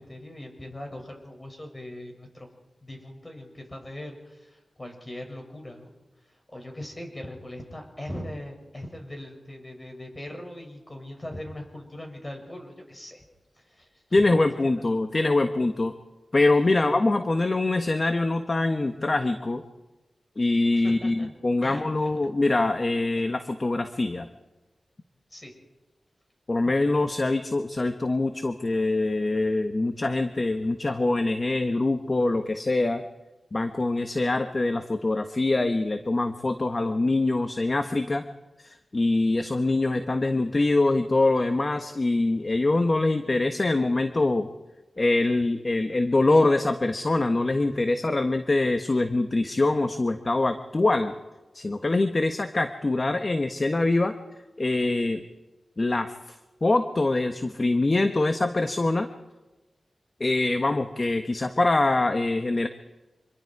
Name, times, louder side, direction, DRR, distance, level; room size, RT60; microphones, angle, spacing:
voice 1, 0.0-2.5 2.8-5.9 6.2-13.2 13.5-14.3 14.7-14.8 16.7-17.0 20.7-21.3 21.6-22.6 25.3-25.5, left 1 dB, 25° left, 2 dB, 6.9 m, -40 dB
voice 2, 14.1-15.9 16.3-19.6 20.4-24.3 26.5-33.0 33.5-38.2 38.6-44.5 45.0-51.1 51.5-54.1 54.6-55.2 55.8-56.3 56.6-59.1 60.2-62.7, left 2 dB, 45° left, 7 dB, 1.4 m, -24 dB
26.5 x 22.5 x 4.8 m, 1.1 s
cardioid pair, 45°, 0 cm